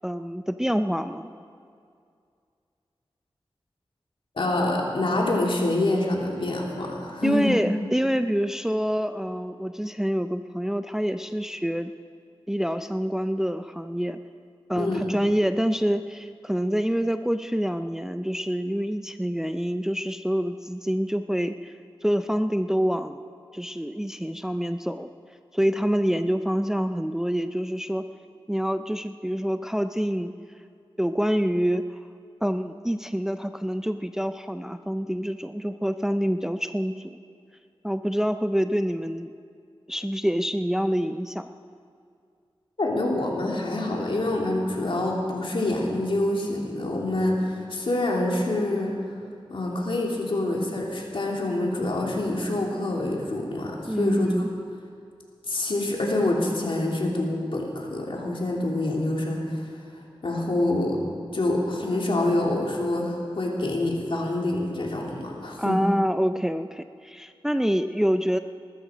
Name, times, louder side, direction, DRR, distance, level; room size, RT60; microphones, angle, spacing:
voice 1, 0.0-1.3 7.2-11.9 12.5-14.2 14.7-21.7 22.0-23.2 23.5-25.1 25.5-28.1 28.5-30.3 31.0-31.9 32.4-37.2 37.8-39.3 39.9-41.5 53.9-54.5 65.6-68.4, equal, 5° right, 9 dB, 0.5 m, -26 dB
voice 2, 4.3-7.6 14.8-15.0 42.8-48.9 49.5-54.4 55.5-59.7 60.2-61.0 61.3-65.8, left 2 dB, 65° left, -1 dB, 3.0 m, -26 dB
19.5 x 13.5 x 5.0 m, 2.3 s
wide cardioid pair, 65°, 10 cm